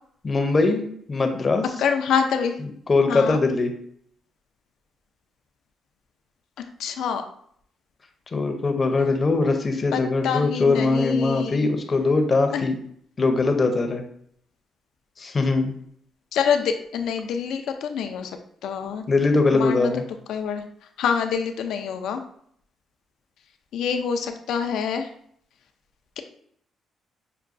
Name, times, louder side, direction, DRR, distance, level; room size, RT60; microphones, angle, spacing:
voice 1, 0.2-1.7 2.9-3.7 8.3-12.7 13.2-14.0 15.2-15.7 19.1-20.0, left 3 dB, 35° left, 5 dB, 0.6 m, -21 dB
voice 2, 1.8-2.6 3.1-3.4 6.8-7.2 9.9-11.7 12.5-12.7 16.3-18.3 18.6-19.0 19.5-19.9 20.3-20.6 21.0-22.2 23.7-25.1, left 7 dB, 80° left, 6 dB, 0.4 m, -26 dB
5.8 x 2.2 x 2.5 m, 0.66 s
cardioid pair, 90°, 0 cm